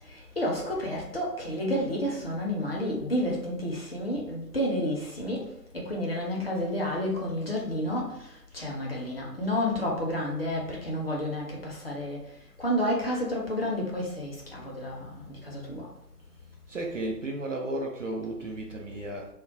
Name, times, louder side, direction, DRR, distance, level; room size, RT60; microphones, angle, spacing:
voice 1, 0.0-12.2 12.6-15.9, left 1 dB, 40° left, -3 dB, 0.6 m, -30 dB
voice 2, 16.7-19.3, right 1 dB, 55° right, 0 dB, 0.5 m, -33 dB
2.2 x 2.1 x 3.6 m, 0.80 s
figure-of-eight pair, 145°, 48 cm